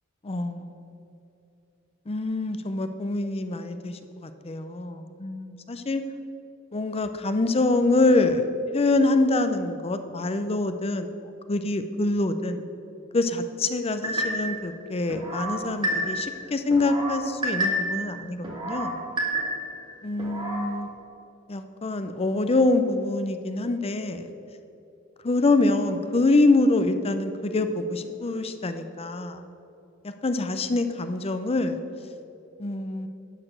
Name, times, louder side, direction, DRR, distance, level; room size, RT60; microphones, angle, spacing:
voice 1, 0.2-1.0 2.1-6.0 6.7-8.5 8.7-11.1 11.5-12.6 13.1-19.0 20.0-20.9 21.5-24.3 25.2-29.4 30.0-31.8 32.6-33.1, left 2 dB, 30° left, 9 dB, 0.5 m, -25 dB
sound 1, 14.0-14.6 15.1-16.3 16.7-18.0 18.4-19.8 20.2-20.7, right 1 dB, 20° right, 1.7 m, -29 dB
11.0 x 5.0 x 7.4 m, 2.8 s
head